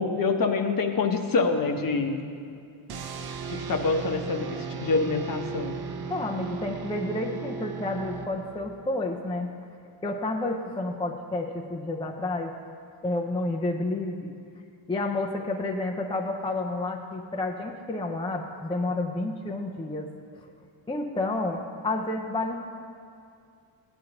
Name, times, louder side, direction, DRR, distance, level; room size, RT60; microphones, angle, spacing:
voice 1, 0.0-2.2 3.4-5.8, left 4 dB, 40° left, 5 dB, 0.8 m, -26 dB
sound 1, 2.9-8.8, right 6 dB, 50° right, 0.7 m, -36 dB
voice 2, 6.1-9.5 10.0-12.6 13.0-14.3 14.9-20.5 20.9-22.6, left 2 dB, 10° left, 1 dB, 0.3 m, -30 dB
15.5 x 9.6 x 2.9 m, 2.4 s
wide cardioid pair, 155°, 49 cm